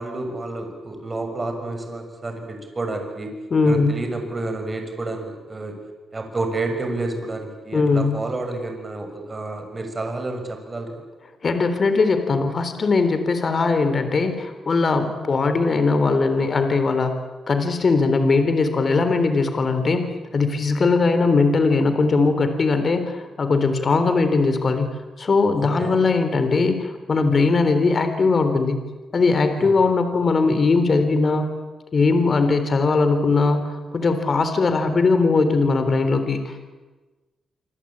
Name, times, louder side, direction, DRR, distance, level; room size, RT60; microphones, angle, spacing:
voice 1, 0.0-3.3 3.6-5.8 6.1-11.0 25.6-26.0 29.6-29.7, right 2 dB, 25° right, 5 dB, 6.4 m, -30 dB
voice 2, 3.5-4.0 7.7-8.2 11.4-17.1 17.5-28.8 29.1-31.6 31.9-36.7, left 3 dB, 40° left, 8 dB, 3.5 m, -20 dB
26.5 x 26.0 x 8.8 m, 1.3 s
cardioid pair, 110°, 0 cm